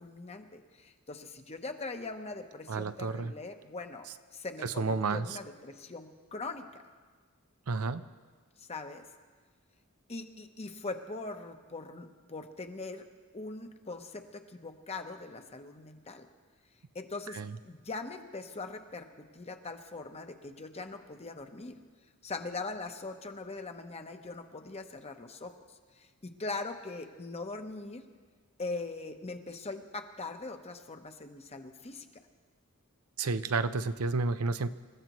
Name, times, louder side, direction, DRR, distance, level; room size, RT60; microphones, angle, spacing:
voice 1, 0.0-6.8 8.6-9.0 10.1-13.1 13.3-16.3 16.9-21.8 22.2-28.0 28.6-32.1, left 3 dB, 30° left, 6 dB, 0.9 m, -41 dB
voice 2, 2.7-3.3 4.6-5.4 7.7-8.0 17.3-17.6 33.2-34.7, right 4 dB, 80° right, 11 dB, 0.6 m, -31 dB
27.5 x 14.5 x 3.1 m, 1.5 s
head